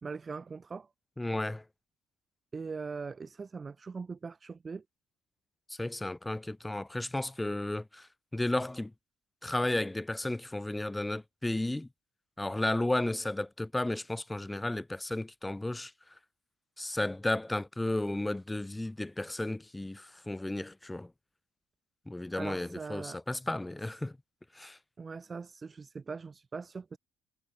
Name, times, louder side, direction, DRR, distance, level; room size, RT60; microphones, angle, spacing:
voice 1, 0.0-0.9 2.5-4.8 22.4-23.2 25.0-27.0, right 4 dB, 35° right, 0.7 m, -41 dB
voice 2, 1.2-1.6 5.8-8.1 8.3-8.9 9.4-11.9 12.4-15.9 16.8-21.1 22.1-24.1 24.6-24.8, left 1 dB, 10° left, 0.4 m, -33 dB
supercardioid pair, 70°, 0 cm